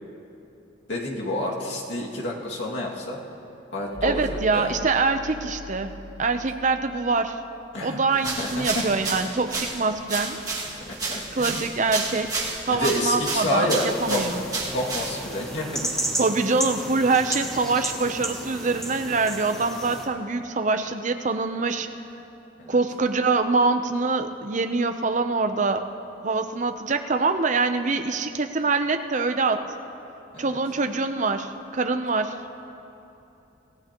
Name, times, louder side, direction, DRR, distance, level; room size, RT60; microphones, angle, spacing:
voice 1, 0.9-3.2 3.7-4.2 4.5-4.7 7.7-8.8 10.8-11.6 12.7-14.3 14.7-15.9 22.6-22.8 30.3-30.6, left 1 dB, 65° left, -3 dB, 2.3 m, -29 dB
sound 1, 3.8-7.0, left 2 dB, 75° right, 2.8 m, -39 dB
voice 2, 4.0-5.9 6.2-7.4 7.8-10.4 11.4-12.3 12.7-14.4 16.2-21.9 22.7-25.8 26.2-29.6 30.4-32.4, right 3 dB, 40° right, 8 dB, 0.7 m, -24 dB
sound 2, 8.2-15.4, right 3 dB, 20° right, 2.1 m, -31 dB
sound 3, 13.9-20.1, right 1 dB, ahead, 1.5 m, -33 dB
26.5 x 16.0 x 3.0 m, 2.9 s
head